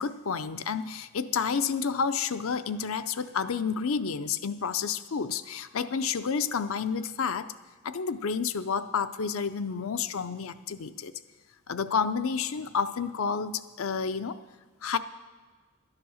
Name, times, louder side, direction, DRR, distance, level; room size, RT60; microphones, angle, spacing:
voice 1, 0.0-7.5 7.8-11.1 11.7-14.4 14.8-15.0, left 6 dB, 70° left, 11 dB, 0.5 m, -30 dB
11.5 x 9.7 x 6.3 m, 1.4 s
head